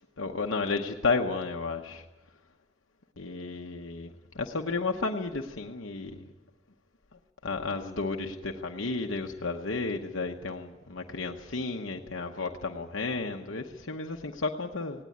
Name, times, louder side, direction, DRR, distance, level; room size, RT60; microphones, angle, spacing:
voice 1, 0.2-2.0 3.2-4.1 4.3-6.3 7.4-15.0, left 3 dB, 75° left, 2 dB, 1.0 m, -32 dB
18.5 x 17.5 x 8.6 m, 1.1 s
head